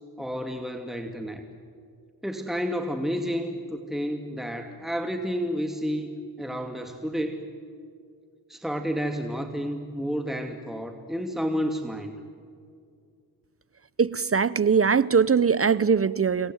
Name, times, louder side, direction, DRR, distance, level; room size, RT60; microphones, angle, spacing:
voice 1, 0.2-1.4 2.2-6.1 6.4-7.4 8.5-12.1, equal, ahead, 5 dB, 2.5 m, -30 dB
voice 2, 14.0-16.5, right 6 dB, 35° right, 19 dB, 0.7 m, -21 dB
27.5 x 23.0 x 9.4 m, 2.2 s
cardioid pair, 60°, 41 cm